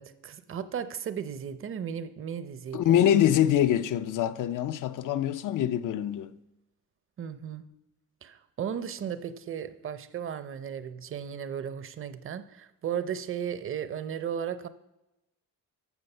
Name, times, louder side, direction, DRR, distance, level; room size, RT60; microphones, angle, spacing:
voice 1, 0.0-3.0 7.2-7.7 8.2-14.7, right 8 dB, 40° right, 0.7 m, -35 dB
voice 2, 2.7-6.3, left 10 dB, 65° left, 0.7 m, -24 dB
14.5 x 6.4 x 5.5 m
cardioid pair, 140°, 33 cm